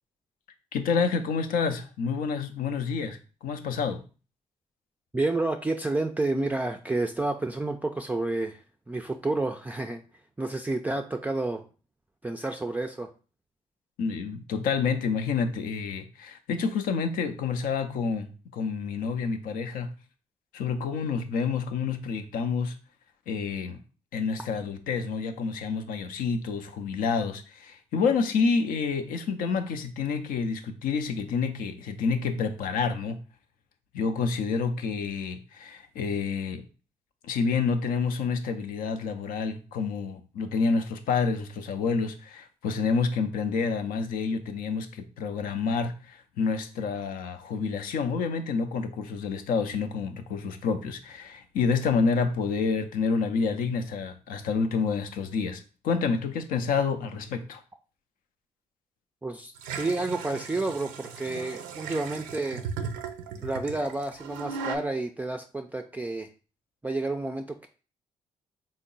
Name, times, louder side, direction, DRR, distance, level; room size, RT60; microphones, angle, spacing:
voice 1, 0.7-4.0 14.0-19.9 20.5-22.8 23.3-23.8 24.1-33.2 33.9-36.7 37.2-57.6, left 5 dB, 70° left, 0.5 m, -28 dB
voice 2, 5.1-8.6 8.9-10.0 10.4-11.6 12.2-13.1 59.2-62.7 63.4-66.3 66.8-67.7, right 2 dB, 10° right, 0.3 m, -30 dB
sound 1, 59.6-64.8, right 6 dB, 90° right, 0.4 m, -37 dB
3.5 x 2.0 x 3.8 m
hypercardioid pair, 50°, 15 cm